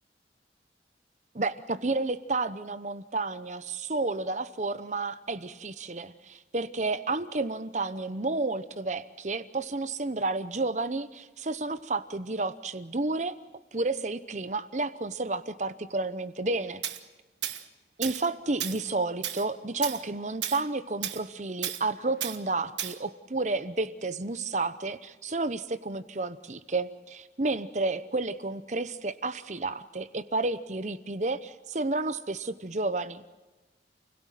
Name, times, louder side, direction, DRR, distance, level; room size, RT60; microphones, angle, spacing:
voice 1, 1.3-13.4 13.7-16.8 18.0-33.3, right 3 dB, 40° right, 13 dB, 0.9 m, -31 dB
Tools, 16.8-17.0 17.4-17.6 18.0-18.3 18.6-18.8 19.2-19.5 19.8-20.0 20.4-20.6 21.0-21.2 21.6-21.8 22.2-22.4 22.8-23.0, right 11 dB, 90° right, 1.4 m, -33 dB
29.0 x 17.0 x 7.6 m, 1.2 s
head